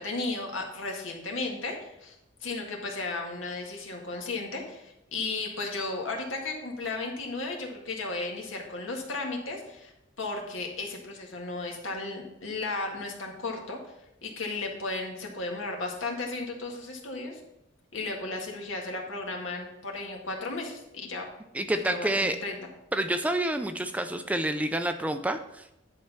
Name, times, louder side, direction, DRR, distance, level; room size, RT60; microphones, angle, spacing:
voice 1, 0.0-9.9 10.2-13.8 14.2-17.4 17.9-21.3 21.7-22.6, left 3 dB, 80° left, 1 dB, 1.8 m, -34 dB
voice 2, 21.5-22.4 22.9-25.7, right 1 dB, 5° right, 8 dB, 0.4 m, -28 dB
10.5 x 4.4 x 5.7 m, 0.85 s
head